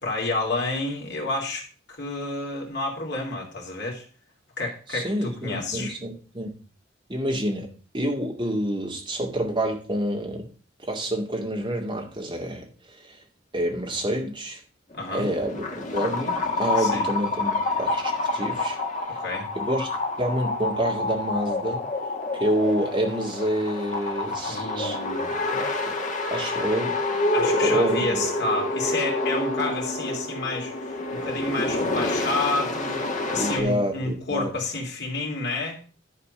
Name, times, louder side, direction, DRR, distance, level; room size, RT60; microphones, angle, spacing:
voice 1, 0.0-4.0 4.6-5.9 14.9-15.3 16.8-17.1 19.2-19.5 24.5-25.4 27.3-30.7 31.1-35.8, left 2 dB, 60° left, 0 dB, 3.1 m, -29 dB
voice 2, 4.9-6.6 7.1-10.5 10.8-12.7 13.1-13.2 13.5-14.6 15.1-15.6 15.9-18.8 19.1-19.2 19.6-19.9 20.2-21.8 22.3-25.0 25.5-25.7 26.3-27.3 27.6-28.2 33.3-34.5, right 1 dB, 25° right, 1 dB, 2.2 m, -28 dB
sound 1, 14.9-33.6, left 2 dB, 40° left, 1.6 m, -28 dB
11.0 x 4.4 x 6.6 m, 0.39 s
head